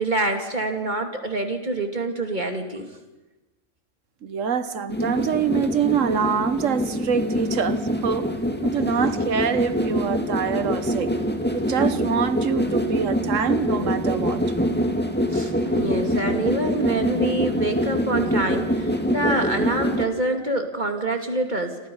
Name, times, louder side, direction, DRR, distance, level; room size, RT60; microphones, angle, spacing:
voice 1, 0.0-2.9 15.3-21.8, right 2 dB, 35° right, 2.8 m, -26 dB
voice 2, 4.2-8.3 8.6-11.1 11.5-14.4, right 7 dB, 90° right, 1.5 m, -25 dB
sound 1, 4.9-20.1, equal, 10° left, 1.9 m, -25 dB
29.5 x 27.0 x 5.6 m
omnidirectional pair, 1.3 m